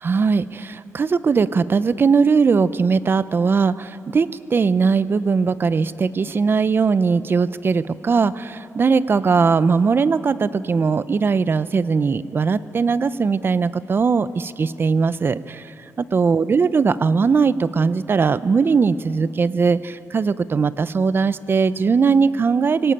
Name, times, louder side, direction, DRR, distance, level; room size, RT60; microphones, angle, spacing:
voice 1, 0.0-22.9, right 5 dB, 40° right, 15 dB, 0.6 m, -19 dB
23.0 x 18.0 x 8.8 m, 2.8 s
cardioid pair, 110°, 6 cm